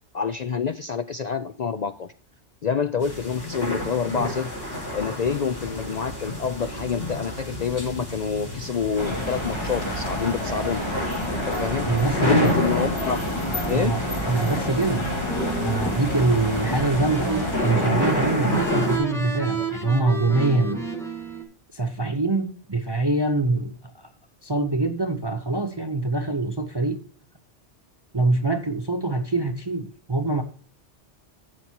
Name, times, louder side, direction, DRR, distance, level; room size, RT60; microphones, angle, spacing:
voice 1, 0.1-2.1 2.6-4.5 4.9-11.9 12.3-13.2 13.7-13.9, left 6 dB, 60° left, 0.4 m, -27 dB
sound 1, 3.0-19.0, left 1 dB, 75° left, 5.2 m, -30 dB
sound 2, 9.0-17.6, left 1 dB, 25° left, 2.2 m, -29 dB
voice 2, 11.9-12.6 13.7-15.1 15.4-20.8 21.7-24.1 24.4-27.0 28.1-30.4, right 3 dB, 25° right, 0.7 m, -24 dB
sound 3, 15.3-21.4, right 3 dB, ahead, 1.6 m, -32 dB
15.0 x 6.1 x 2.8 m
omnidirectional pair, 1.2 m